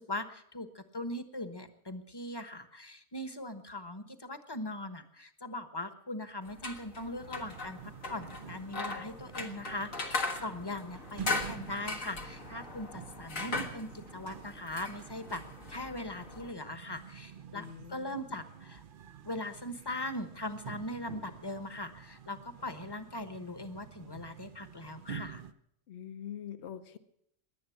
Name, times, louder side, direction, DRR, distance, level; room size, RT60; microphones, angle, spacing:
voice 1, 0.0-7.8 8.1-15.4 15.7-18.8 19.2-25.4, left 1 dB, 20° left, 11 dB, 1.1 m, -40 dB
sound 1, 6.4-16.5, left 3 dB, 80° left, 1.9 m, -39 dB
sound 2, 7.2-25.5, right 8 dB, 50° right, 0.8 m, -48 dB
voice 2, 17.5-18.1 25.9-27.0, left 9 dB, 60° left, 11 dB, 1.2 m, -44 dB
18.0 x 11.0 x 7.2 m, 0.71 s
omnidirectional pair, 1.4 m